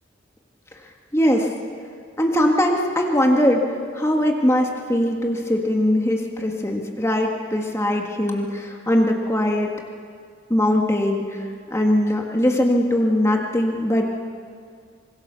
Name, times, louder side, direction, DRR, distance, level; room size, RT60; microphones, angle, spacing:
voice 1, 1.1-1.5 2.2-9.7 10.5-14.1, left 1 dB, 15° left, 1 dB, 1.7 m, -21 dB
25.5 x 22.5 x 6.9 m, 2.2 s
head